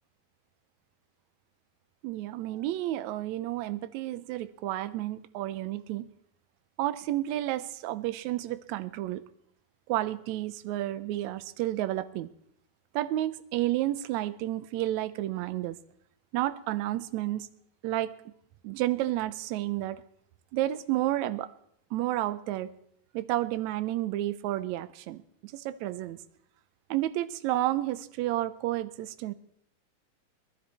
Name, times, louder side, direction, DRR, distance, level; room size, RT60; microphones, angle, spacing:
voice 1, 2.0-6.1 6.8-9.2 9.9-12.3 12.9-15.8 16.3-17.5 17.8-18.3 18.6-20.0 20.5-21.5 21.9-22.7 23.1-26.2 26.9-29.3, right 14 dB, 75° right, 13 dB, 1.9 m, -31 dB
20.0 x 15.0 x 4.2 m, 0.69 s
omnidirectional pair, 3.7 m